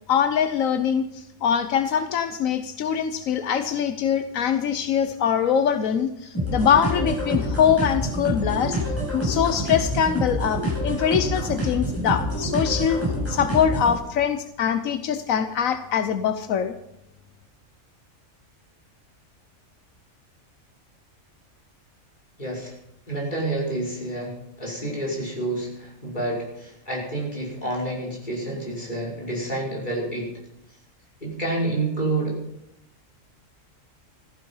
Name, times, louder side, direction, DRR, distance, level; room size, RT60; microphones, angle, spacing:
voice 1, 0.1-8.8 9.1-13.0 13.3-16.7, left 8 dB, 85° left, 10 dB, 1.2 m, -23 dB
sound 1, 6.3-14.0, equal, 10° left, 7.5 m, -27 dB
voice 2, 22.4-22.7 23.1-30.3 31.2-32.4, right 2 dB, 35° left, -3 dB, 5.6 m, -29 dB
15.5 x 14.5 x 5.6 m, 0.77 s
omnidirectional pair, 1.4 m